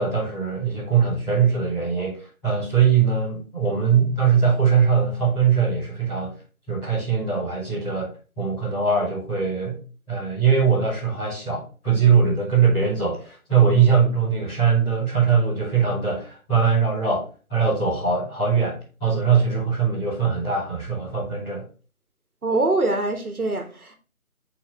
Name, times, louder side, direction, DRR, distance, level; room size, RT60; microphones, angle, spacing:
voice 1, 0.0-6.4 6.7-8.1 8.4-9.8 10.1-21.6, right 6 dB, 5° left, 1.2 m, -21 dB
voice 2, 22.4-23.9, right 2 dB, 85° right, 1.5 m, -23 dB
7.3 x 4.2 x 3.2 m
figure-of-eight pair, 160°, 43 cm